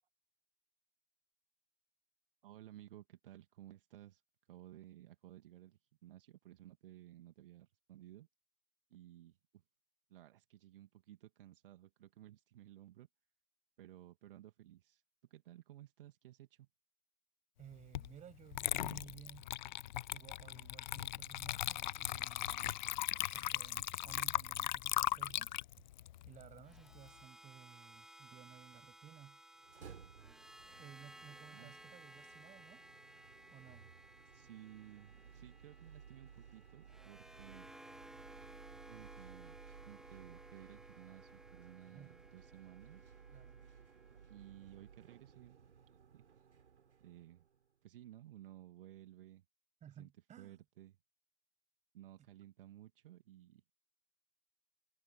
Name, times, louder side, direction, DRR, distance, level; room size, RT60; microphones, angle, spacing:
voice 1, 2.4-4.2 4.5-8.3 8.9-9.6 10.1-13.1 13.8-15.0 15.3-16.7 31.5-31.7 34.2-37.7 38.9-39.6 39.9-43.1 44.3-45.6 45.9-46.5 47.0-47.5 47.8-49.4 49.9-50.1 50.4-51.0 51.9-53.6, right 13 dB, 50° right, 2.1 m, -56 dB
voice 2, 17.6-19.5 20.1-22.8 23.3-25.5 26.3-29.4 30.8-32.8 33.5-33.9 41.9-42.1 43.3-43.6 49.8-50.6, right 10 dB, 20° right, 6.2 m, -57 dB
Water / Liquid, 17.9-18.1 18.5-27.1, left 13 dB, 40° left, 0.5 m, -38 dB
sound 1, 26.6-44.8, right 1 dB, ahead, 3.1 m, -59 dB
sound 2, 29.6-47.7, right 7 dB, 65° right, 4.1 m, -59 dB
figure-of-eight pair, 110°, 36 cm